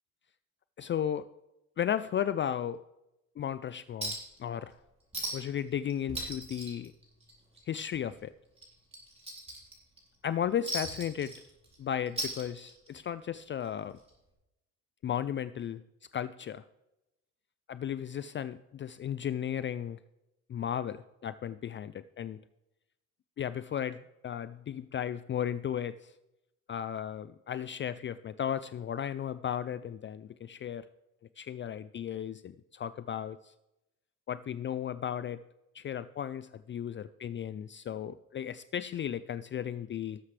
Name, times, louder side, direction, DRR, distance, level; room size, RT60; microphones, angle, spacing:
voice 1, 0.8-1.3 1.8-2.8 3.4-4.8 5.3-6.9 7.7-8.3 10.2-11.3 11.8-14.0 15.0-15.8 16.1-16.6 17.7-20.0 20.5-22.4 23.4-26.1 26.7-30.9 31.4-33.5 34.3-35.4 35.7-40.2, left 9 dB, 40° left, 14 dB, 0.4 m, -35 dB
Chink clink, 4.0-4.4 4.7-4.8 5.1-5.6 5.9-7.6 7.9-8.1 8.6-10.0 10.7-11.8 12.1-13.0 14.1-14.2, right 1 dB, 20° right, 3.8 m, -38 dB
18.0 x 7.3 x 3.3 m, 0.92 s
cardioid pair, 90°, 30 cm